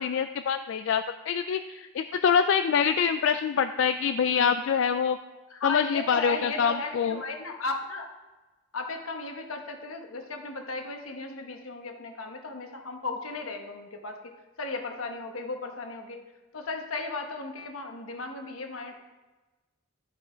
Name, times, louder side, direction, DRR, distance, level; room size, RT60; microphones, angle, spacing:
voice 1, 0.0-5.2 5.6-7.2, left 7 dB, 65° left, 9 dB, 0.3 m, -25 dB
voice 2, 5.5-8.1 8.7-14.3 14.6-16.2 16.5-19.0, left 3 dB, 80° left, 4 dB, 1.2 m, -35 dB
11.5 x 5.5 x 5.0 m, 1.2 s
head